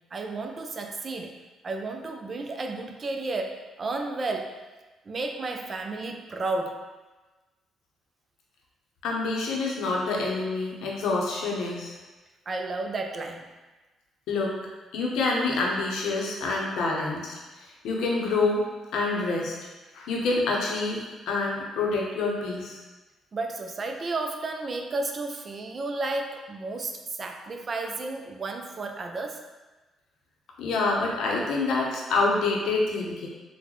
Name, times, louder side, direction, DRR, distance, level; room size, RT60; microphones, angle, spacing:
voice 1, 0.1-1.4 1.6-4.6 5.1-6.8 12.5-13.5 23.3-29.4, right 3 dB, 40° right, 4 dB, 0.4 m, -32 dB
voice 2, 9.0-11.9 14.3-14.5 14.9-17.4 17.8-18.6 18.9-19.6 19.9-21.0 21.3-22.8 30.6-33.3, left 3 dB, 80° left, -2 dB, 0.7 m, -27 dB
3.8 x 2.1 x 3.0 m, 1.2 s
cardioid pair, 90°, 0 cm